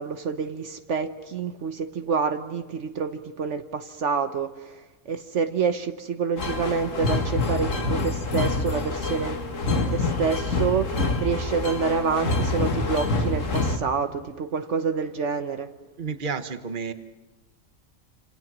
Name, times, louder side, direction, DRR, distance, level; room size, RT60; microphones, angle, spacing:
voice 1, 0.0-4.8 5.1-10.9 11.2-15.7, right 5 dB, 70° right, 8 dB, 1.3 m, -27 dB
sound 1, 6.4-13.8, left 2 dB, 80° left, 2.2 m, -26 dB
voice 2, 16.0-16.9, right 5 dB, 40° right, 9 dB, 1.3 m, -31 dB
27.5 x 26.5 x 6.2 m, 1.2 s
omnidirectional pair, 1.3 m